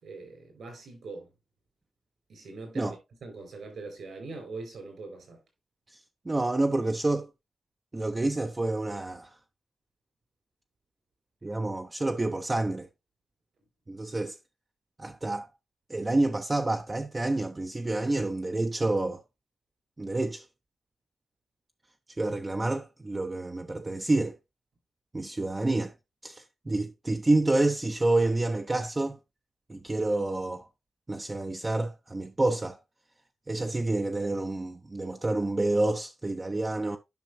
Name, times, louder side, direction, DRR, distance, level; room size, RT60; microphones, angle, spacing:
voice 1, 0.0-1.3 2.3-3.0 3.2-5.4, right 3 dB, 75° right, 4.5 m, -42 dB
voice 2, 6.3-7.3 7.9-9.3 11.4-12.9 13.9-14.4 15.0-15.5 15.9-19.2 20.0-20.5 22.2-24.4 25.1-25.9 26.2-29.2 29.7-30.7 31.1-32.8 33.5-37.0, right 2 dB, 20° right, 0.5 m, -28 dB
10.5 x 5.8 x 2.6 m
wide cardioid pair, 135°, 0 cm